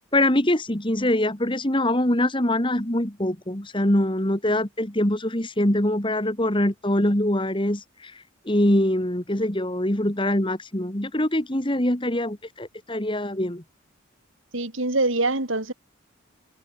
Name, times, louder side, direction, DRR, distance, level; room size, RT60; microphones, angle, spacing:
voice 1, 0.1-8.1 8.5-13.6, left 1 dB, 25° left, 2.3 m, -23 dB
voice 2, 14.5-15.7, right 2 dB, 70° right, 3.7 m, -24 dB
head